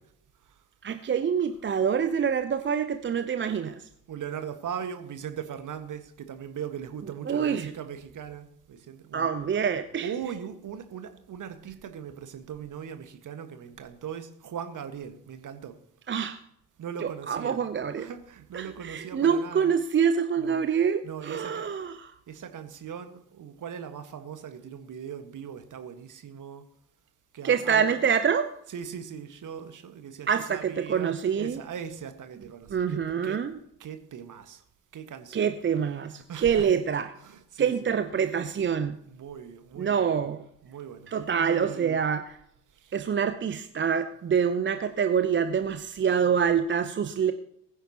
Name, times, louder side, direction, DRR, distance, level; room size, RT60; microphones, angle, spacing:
voice 1, 0.8-3.9 7.3-7.7 9.1-10.1 16.1-16.4 17.0-18.1 18.5-22.1 27.4-28.5 30.3-31.6 32.7-33.6 35.3-37.1 37.6-39.0 39.8-40.4 41.1-42.4 42.9-47.3, right 7 dB, 25° right, 10 dB, 0.7 m, -26 dB
voice 2, 4.1-9.3 10.0-15.7 16.8-17.6 18.0-19.7 20.4-20.7 21.0-21.7 22.3-26.6 27.3-28.0 28.7-33.5 33.8-34.6 34.9-35.5 36.0-36.7 37.2-38.0 39.1-40.1 40.6-42.0 42.8-42.9 46.2-46.3, right 8 dB, 40° right, 8 dB, 1.7 m, -39 dB
21.5 x 9.9 x 3.0 m, 0.73 s
figure-of-eight pair, 50°, 47 cm